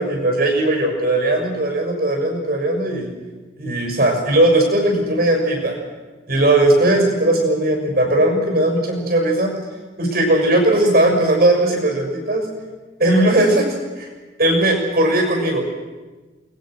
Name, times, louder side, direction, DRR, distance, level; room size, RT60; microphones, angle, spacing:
voice 1, 0.0-3.1 3.6-5.8 6.3-9.5 10.0-12.5 13.0-13.7 14.0-14.1 14.4-15.6, right 1 dB, 55° right, 2 dB, 6.5 m, -18 dB
29.5 x 21.0 x 6.3 m, 1.3 s
head